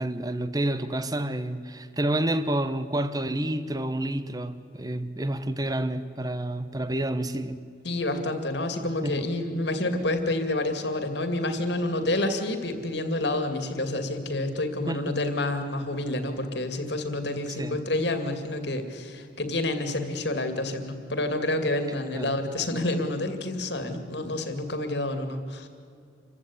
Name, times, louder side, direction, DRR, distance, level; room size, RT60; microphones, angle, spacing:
voice 1, 0.0-7.6 9.0-9.3 14.9-15.1 17.6-17.8 22.1-22.4, right 1 dB, 20° right, 12 dB, 1.0 m, -29 dB
voice 2, 7.8-25.7, left 2 dB, 60° left, 7 dB, 2.5 m, -28 dB
26.5 x 15.5 x 9.9 m, 2.4 s
head